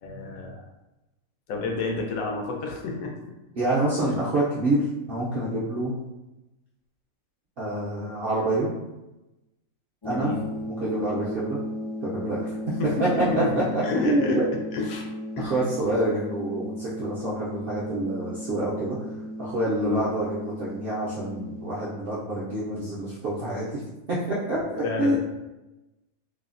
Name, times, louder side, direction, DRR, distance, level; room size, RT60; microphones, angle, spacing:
voice 1, 0.0-0.6 1.5-3.1 10.0-10.4 12.8-14.4 14.7-15.0 15.4-15.5 19.8-20.0 24.7-25.2, left 3 dB, 80° left, 0 dB, 1.0 m, -29 dB
voice 2, 3.5-5.9 7.6-8.7 10.0-10.4 10.8-11.6 12.0-12.5 13.0-13.1 13.6-14.5 15.4-19.0 19.4-23.8 24.1-25.2, right 1 dB, 65° right, -7 dB, 0.5 m, -27 dB
sound 1, 10.0-22.0, left 1 dB, 35° left, 0.5 m, -36 dB
3.1 x 2.0 x 2.4 m, 1.0 s
omnidirectional pair, 1.5 m